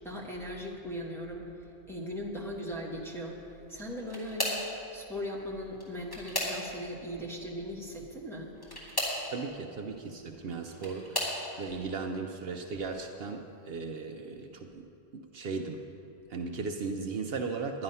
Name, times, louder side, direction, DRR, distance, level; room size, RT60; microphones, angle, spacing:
voice 1, 0.0-1.5 1.9-3.4 3.7-4.6 4.9-8.5, equal, ahead, -4 dB, 1.4 m, -38 dB
sound 1, 3.7-4.7 5.7-7.0 8.6-9.3 10.3-11.4 12.2-12.5 12.9-13.1 14.4-14.5, equal, 20° left, 2.4 m, -35 dB
voice 2, 9.3-14.8 15.1-15.9 16.3-17.8, right 4 dB, 65° right, 4 dB, 0.9 m, -37 dB
10.5 x 10.5 x 5.5 m, 2.7 s
omnidirectional pair, 1.1 m